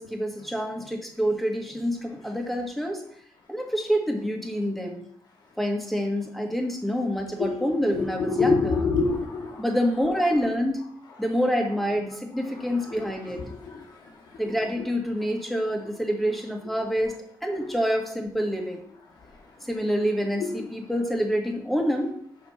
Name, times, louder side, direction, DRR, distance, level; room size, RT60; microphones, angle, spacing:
voice 1, 0.0-3.0 3.5-5.0 5.6-8.9 9.6-10.8 11.2-13.4 14.4-18.8 19.7-22.1, equal, ahead, 2 dB, 1.6 m, -27 dB
voice 2, 7.9-9.6 12.5-13.1 13.3-13.8 20.4-20.5, left 4 dB, 75° left, -1 dB, 2.0 m, -26 dB
6.8 x 5.0 x 5.8 m, 0.66 s
cardioid pair, 105°, 8 cm